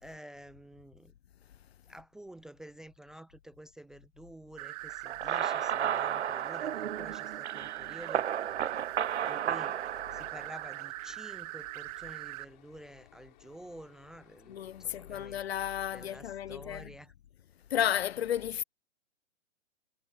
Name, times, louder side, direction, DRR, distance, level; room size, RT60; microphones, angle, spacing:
voice 1, 0.0-1.1 1.9-8.3 9.2-9.8 10.1-15.4 15.9-17.1, right 1 dB, ahead, 0.5 m, -50 dB
sound 1, 4.6-12.5, right 23 dB, 30° right, 1.8 m, -42 dB
sound 2, 5.1-10.9, right 9 dB, 65° right, 0.6 m, -33 dB
sound 3, 9.3-15.9, left 16 dB, 40° left, 7.9 m, -62 dB
voice 2, 14.5-16.9 17.7-18.6, left 10 dB, 60° left, 0.5 m, -33 dB
figure-of-eight pair, 125°, 37 cm